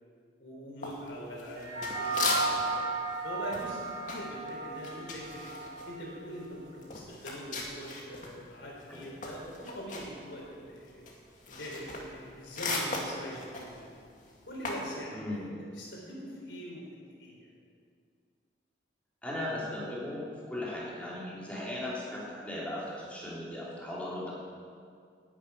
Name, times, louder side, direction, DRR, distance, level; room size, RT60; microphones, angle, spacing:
voice 1, 0.4-5.4 5.9-11.0 11.5-13.9 14.5-17.5 21.4-21.5, equal, 85° left, -3 dB, 3.7 m, -43 dB
sound 1, 0.8-2.8 3.1-8.4 8.7-14.9, left 2 dB, 45° left, 2.3 m, -37 dB
sound 2, 1.6-6.2, right 3 dB, 75° right, 3.7 m, -35 dB
voice 2, 19.2-24.3, left 1 dB, 5° left, -7 dB, 3.5 m, -37 dB
10.5 x 10.0 x 9.5 m, 2.2 s
head